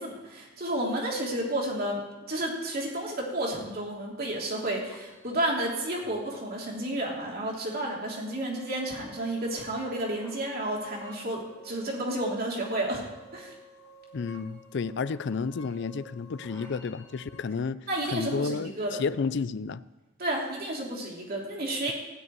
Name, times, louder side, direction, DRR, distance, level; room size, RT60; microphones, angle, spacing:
voice 1, 0.0-2.0 2.3-13.0 13.3-13.5 17.9-19.0 20.2-21.9, right 1 dB, 45° right, -2 dB, 3.1 m, -31 dB
sound 1, 4.8-17.4, right 1 dB, 15° left, 2.0 m, -52 dB
voice 2, 14.1-17.8 18.1-19.8, left 5 dB, 55° left, 17 dB, 0.4 m, -31 dB
15.5 x 5.4 x 9.3 m, 1.1 s
head